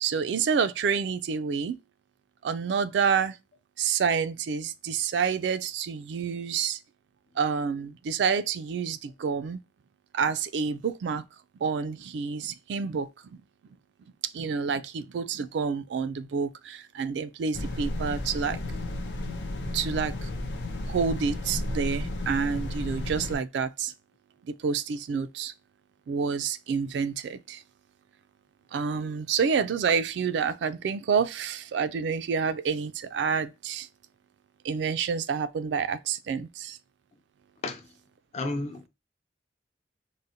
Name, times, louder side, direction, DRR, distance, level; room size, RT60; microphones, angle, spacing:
voice 1, 0.0-1.8 2.4-3.4 3.8-6.8 7.4-9.6 10.1-11.3 11.6-13.4 14.2-18.6 19.7-20.3 20.9-23.9 24.6-25.5 26.1-27.6 28.7-33.9 34.6-36.8, right 6 dB, 80° right, 0.3 m, -28 dB
sound 1, 17.5-23.4, left 1 dB, 90° left, 0.6 m, -33 dB
voice 2, 38.3-38.9, left 2 dB, 40° left, 0.5 m, -32 dB
3.8 x 2.1 x 2.7 m
head